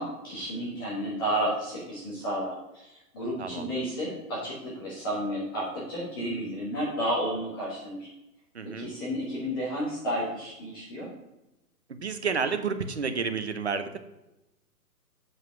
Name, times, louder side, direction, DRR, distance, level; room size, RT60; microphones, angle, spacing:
voice 1, 0.0-8.1 8.7-11.1, equal, 15° left, -7 dB, 1.3 m, -32 dB
voice 2, 8.5-8.9 12.0-14.0, right 5 dB, 45° right, 9 dB, 0.7 m, -30 dB
7.8 x 5.5 x 6.0 m, 0.92 s
hypercardioid pair, 180°, 48 cm